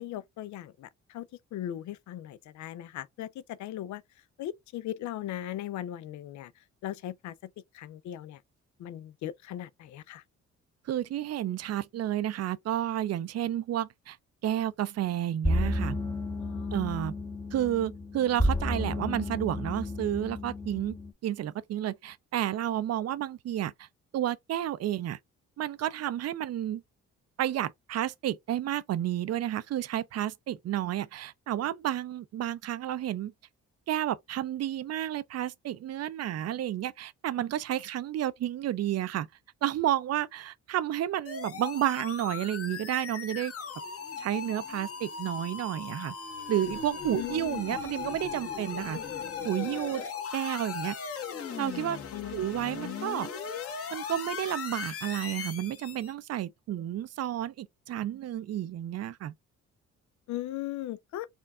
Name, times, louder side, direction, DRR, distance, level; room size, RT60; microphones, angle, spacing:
voice 1, 0.0-4.0 4.4-6.5 6.8-8.4 8.8-10.2 16.4-16.8 47.1-47.6 50.1-50.3 52.1-52.5 60.3-61.3, left 12 dB, 70° left, 0.5 m, -38 dB
voice 2, 10.8-14.2 14.4-16.0 16.7-17.1 17.5-23.9 24.1-25.2 25.6-26.8 27.4-33.3 33.9-39.3 39.6-43.5 44.2-46.2 46.5-49.0 49.4-50.0 50.3-51.0 51.6-52.0 52.3-53.3 53.9-59.3, right 12 dB, 55° right, 0.5 m, -31 dB
sound 1, 15.4-21.1, left 1 dB, 10° left, 0.8 m, -31 dB
sound 2, 41.2-56.1, left 6 dB, 50° left, 1.3 m, -38 dB
4.4 x 2.3 x 3.4 m
cardioid pair, 90°, 30 cm